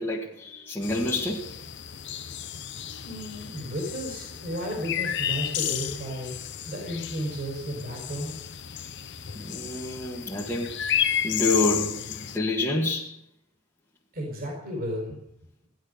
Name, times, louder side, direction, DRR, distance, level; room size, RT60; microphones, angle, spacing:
voice 1, 0.0-1.5 9.4-13.2, left 2 dB, 10° left, 1.9 m, -28 dB
sound 1, 0.8-12.4, left 10 dB, 55° left, 0.9 m, -32 dB
voice 2, 3.0-6.3 6.6-8.4 14.1-15.2, equal, 45° right, 4.6 m, -33 dB
17.0 x 11.5 x 6.7 m
head